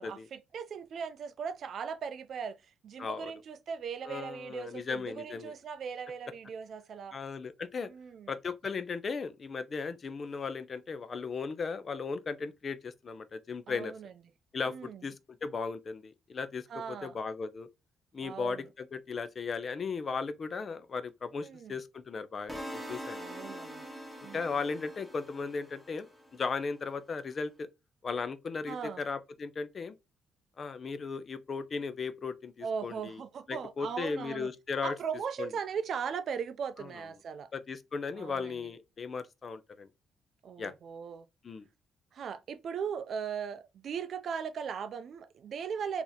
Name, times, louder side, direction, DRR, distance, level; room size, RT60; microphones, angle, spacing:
voice 1, 0.0-7.2 7.9-8.3 13.7-14.1 14.7-15.0 16.7-17.2 18.2-18.7 21.4-21.8 23.2-23.9 24.2-24.5 28.7-29.0 32.6-34.5 34.8-37.5 38.1-38.7 40.4-41.3 42.1-46.0, right 6 dB, 60° right, 0.4 m, -38 dB
voice 2, 3.0-3.3 4.0-5.5 7.1-7.9 8.3-13.9 14.5-15.1 15.4-17.7 18.1-23.2 24.3-27.7 28.0-29.9 30.6-33.2 33.5-34.9 35.4-35.5 37.5-39.9 40.6-40.7 41.4-41.6, left 5 dB, 45° left, 0.5 m, -36 dB
sound 1, 22.5-26.6, equal, ahead, 1.1 m, -44 dB
2.9 x 2.6 x 4.0 m
cardioid pair, 90°, 0 cm